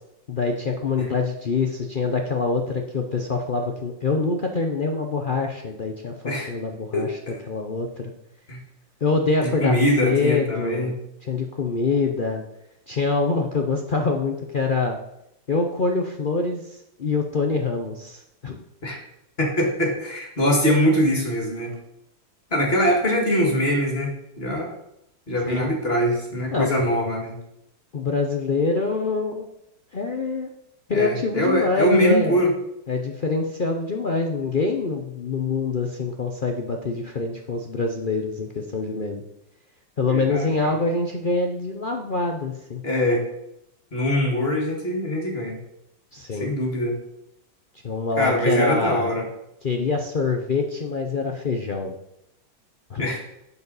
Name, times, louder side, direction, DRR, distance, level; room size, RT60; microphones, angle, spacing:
voice 1, 0.3-7.2 7.5-8.1 9.0-10.9 11.2-12.4 12.9-15.0 15.5-18.6 25.5-25.7 26.5-26.7 27.9-29.5 29.9-30.5 30.9-32.4 32.9-39.2 40.0-42.8 46.1-46.5 47.8-49.1 49.6-51.9 52.9-53.1, left 3 dB, 75° left, 3 dB, 0.4 m, -25 dB
voice 2, 6.9-7.4 8.5-8.6 9.4-10.9 18.8-19.0 19.4-21.7 22.5-24.1 24.4-24.7 25.3-27.4 30.9-32.5 40.1-40.7 42.8-43.2 43.9-45.6 46.4-47.0 48.2-49.2 53.0-53.2, equal, 30° left, 1 dB, 2.1 m, -23 dB
9.3 x 7.1 x 4.0 m, 0.81 s
omnidirectional pair, 2.1 m